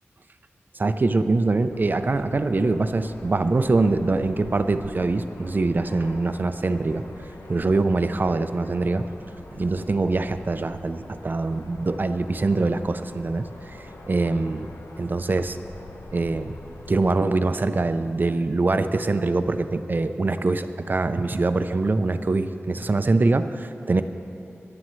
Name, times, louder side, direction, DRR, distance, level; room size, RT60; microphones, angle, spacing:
voice 1, 0.7-7.0 7.5-9.1 9.6-14.7 15.0-15.6 16.1-16.5 16.9-24.0, right 3 dB, 45° right, 10 dB, 0.5 m, -23 dB
sound 1, 1.7-17.1, left 2 dB, 80° left, 0.9 m, -44 dB
17.0 x 11.5 x 3.2 m, 2.7 s
wide cardioid pair, 90°, 5 cm